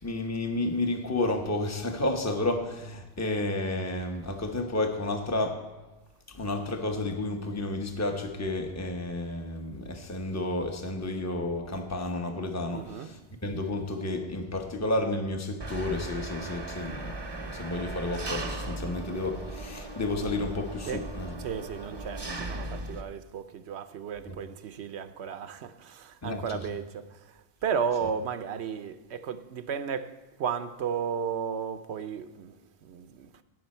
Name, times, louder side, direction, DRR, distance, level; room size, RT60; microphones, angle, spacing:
voice 1, 0.0-5.6 6.3-21.3 24.3-24.4 26.2-26.4, left 2 dB, 15° left, 1.0 m, -31 dB
voice 2, 12.7-13.1 16.8-17.0 18.9-19.0 20.9-21.1 21.4-33.4, right 7 dB, 80° right, 0.9 m, -34 dB
Engine, 15.6-23.0, right 2 dB, 25° right, 0.8 m, -37 dB
17.5 x 6.4 x 4.3 m
omnidirectional pair, 1.1 m